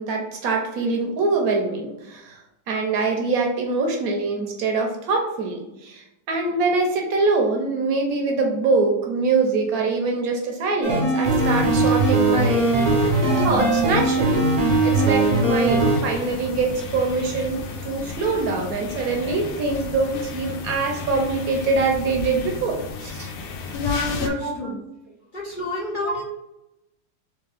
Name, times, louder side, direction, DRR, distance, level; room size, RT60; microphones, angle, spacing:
voice 1, 0.0-2.4 2.7-12.9 13.4-14.5 14.8-23.3 24.2-24.8 26.0-26.1, right 3 dB, 60° right, 2 dB, 1.0 m, -24 dB
sound 1, 10.8-16.0, right 2 dB, 40° right, 0.7 m, -20 dB
sound 2, 11.2-24.3, left 4 dB, 80° left, 1.3 m, -34 dB
voice 2, 23.7-24.8 25.3-26.2, left 3 dB, 55° left, -5 dB, 0.5 m, -28 dB
3.5 x 3.0 x 3.3 m, 0.90 s
omnidirectional pair, 2.0 m